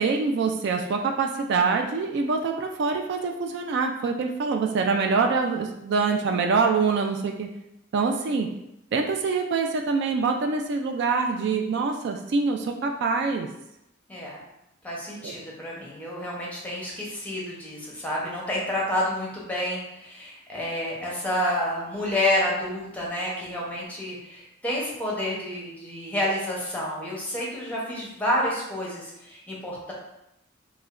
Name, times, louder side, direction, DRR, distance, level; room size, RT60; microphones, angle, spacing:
voice 1, 0.0-7.5 7.9-8.5 8.9-13.5 15.2-15.3, right 4 dB, 60° right, 3 dB, 0.3 m, -25 dB
voice 2, 14.8-29.9, left 1 dB, 10° left, -4 dB, 0.8 m, -29 dB
4.7 x 2.1 x 2.5 m, 0.86 s
head